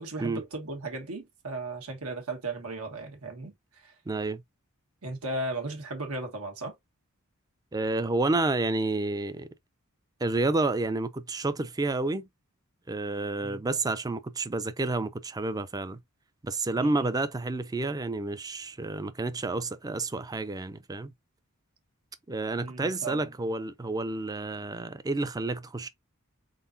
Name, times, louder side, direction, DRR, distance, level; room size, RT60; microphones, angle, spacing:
voice 1, 0.0-3.9 5.0-6.8 13.4-13.6 16.8-17.1 22.6-23.3, right 2 dB, 80° right, 1.5 m, -36 dB
voice 2, 4.1-4.4 7.7-9.5 10.2-12.3 12.9-16.0 16.4-21.1 22.3-25.9, right 2 dB, 15° right, 0.4 m, -30 dB
3.9 x 3.9 x 2.6 m
head